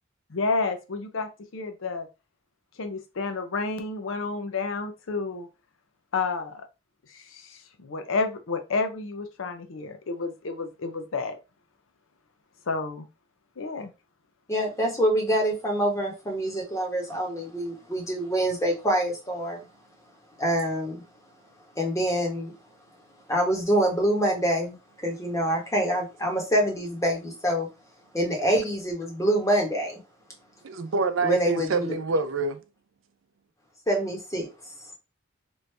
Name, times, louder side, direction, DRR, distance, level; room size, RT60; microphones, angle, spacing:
voice 1, 0.3-2.1 2.8-5.5 6.1-6.6 7.1-11.4 12.7-13.1 13.6-13.9, left 4 dB, 80° left, 0.6 m, -30 dB
voice 2, 14.5-19.6 20.4-21.0 21.8-22.5 23.3-27.7 28.1-30.0 31.2-31.9 33.9-34.5, right 1 dB, 15° left, 1.0 m, -25 dB
voice 3, 30.6-32.6, right 3 dB, 75° right, 0.5 m, -27 dB
3.1 x 2.6 x 3.2 m
head